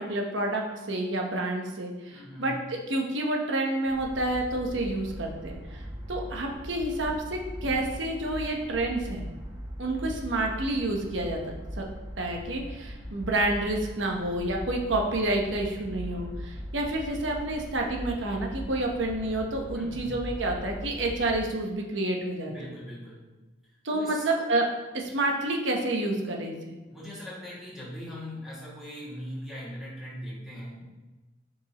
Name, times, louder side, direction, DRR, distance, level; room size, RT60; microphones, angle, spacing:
voice 1, 0.0-2.5 2.9-5.8 6.1-9.2 9.8-11.4 11.8-11.9 12.2-22.5 23.8-24.6 24.9-26.7, right 2 dB, 80° right, 1 dB, 1.0 m, -29 dB
voice 2, 2.1-2.5 19.7-20.1 22.5-23.3 23.7-24.2 26.9-30.9, equal, 5° right, -8 dB, 2.2 m, -40 dB
sound 1, 3.9-21.3, equal, 20° right, 1.0 m, -40 dB
7.3 x 5.1 x 3.0 m, 1.2 s
head